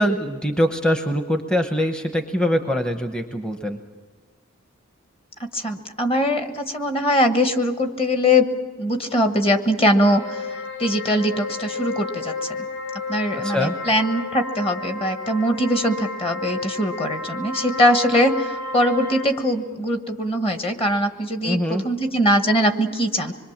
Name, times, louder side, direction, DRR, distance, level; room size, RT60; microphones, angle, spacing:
voice 1, 0.0-3.8 13.4-13.8 21.4-21.8, equal, 5° left, 6 dB, 0.8 m, -23 dB
voice 2, 5.4-8.5 8.8-12.6 13.1-23.3, equal, 25° left, 7 dB, 1.3 m, -21 dB
sound 1, 10.0-19.2, left 3 dB, 80° left, 5.4 m, -31 dB
26.0 x 22.0 x 7.3 m, 1.4 s
head